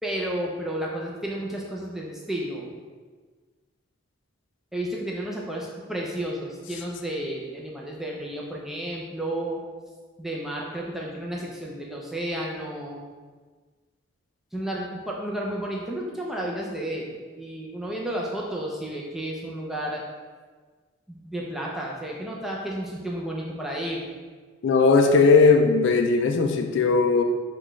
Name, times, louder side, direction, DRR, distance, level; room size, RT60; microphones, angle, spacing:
voice 1, 0.0-2.7 4.7-9.6 10.2-13.0 14.5-20.0 21.1-24.1, right 1 dB, ahead, -3 dB, 0.5 m, -32 dB
voice 2, 24.6-27.2, left 4 dB, 60° left, 4 dB, 0.3 m, -18 dB
5.9 x 2.3 x 3.1 m, 1.4 s
head